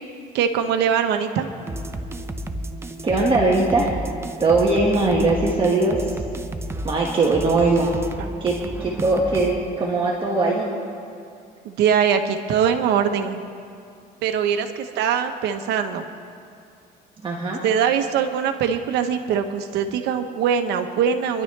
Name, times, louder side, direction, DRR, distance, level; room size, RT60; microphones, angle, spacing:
voice 1, 0.3-1.5 11.6-13.4 14.2-16.1 17.6-21.4, right 8 dB, 85° right, 7 dB, 1.2 m, -22 dB
sound 1, 1.7-9.7, right 1 dB, 15° right, 0.8 m, -32 dB
voice 2, 3.0-3.9 4.4-6.1 6.8-7.9 8.4-8.6 8.8-10.7 17.2-17.6, right 3 dB, 30° right, -3 dB, 1.8 m, -20 dB
26.0 x 11.5 x 3.4 m, 2.5 s
cardioid pair, 110°, 17 cm